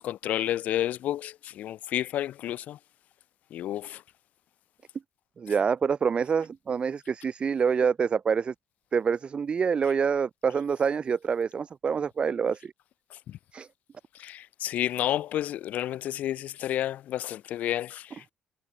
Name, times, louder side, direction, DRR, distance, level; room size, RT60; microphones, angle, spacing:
voice 1, 0.0-2.8 3.5-4.0 13.3-13.4 14.2-18.3, left 12 dB, 65° left, 0.6 m, -31 dB
voice 2, 5.4-8.5 8.9-12.7 13.5-13.7, right 6 dB, 40° right, 0.3 m, -26 dB
hypercardioid pair, 55°, 3 cm